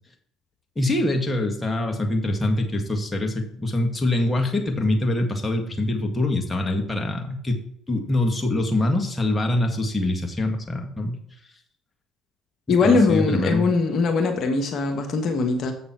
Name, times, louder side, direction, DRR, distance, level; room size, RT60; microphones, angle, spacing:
voice 1, 0.8-7.6 7.9-11.2 12.8-13.6, left 1 dB, 15° left, 2 dB, 1.9 m, -24 dB
voice 2, 12.7-15.7, left 4 dB, 55° left, 5 dB, 1.3 m, -21 dB
7.5 x 6.5 x 4.6 m, 0.68 s
hypercardioid pair, 60°, 0 cm